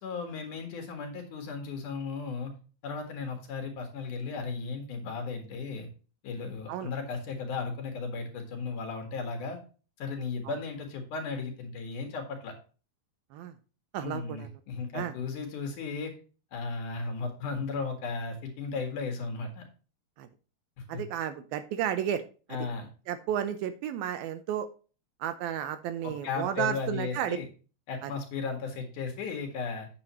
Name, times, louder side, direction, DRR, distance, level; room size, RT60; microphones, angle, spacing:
voice 1, 0.0-2.5 2.8-5.9 6.2-9.6 10.0-12.5 14.0-16.1 16.5-19.6 20.8-21.0 22.5-22.9 26.0-27.5 27.9-29.9, left 4 dB, 60° left, 4 dB, 2.7 m, -35 dB
voice 2, 13.9-14.5 14.9-15.1 20.2-20.3 20.9-22.2 22.5-22.6 23.1-24.7 25.2-27.4 28.0-28.1, right 10 dB, 80° right, 11 dB, 2.4 m, -32 dB
8.7 x 7.7 x 2.9 m, 0.35 s
omnidirectional pair, 4.6 m